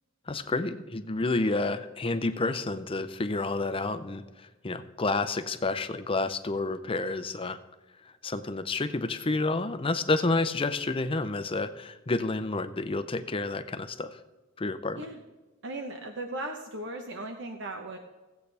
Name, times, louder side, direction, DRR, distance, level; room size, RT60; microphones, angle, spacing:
voice 1, 0.3-7.6 8.2-14.2 14.6-15.0, left 3 dB, 25° left, 10 dB, 0.6 m, -30 dB
voice 2, 15.6-18.0, right 1 dB, 60° right, 3 dB, 0.9 m, -37 dB
17.5 x 8.1 x 3.4 m, 1.2 s
head